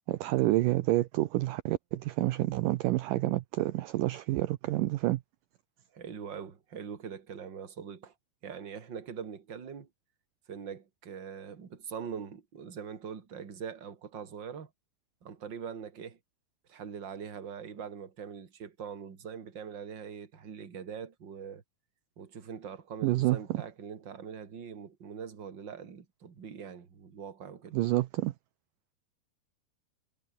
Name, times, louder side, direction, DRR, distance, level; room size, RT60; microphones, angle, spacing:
voice 1, 0.1-5.2 23.0-23.4 27.7-28.3, right 17 dB, 75° right, 2.1 m, -28 dB
voice 2, 5.9-8.1 8.4-9.9 10.5-14.7 15.2-16.2 16.7-21.6 22.2-27.8, right 7 dB, 35° right, 2.6 m, -42 dB
omnidirectional pair, 4.6 m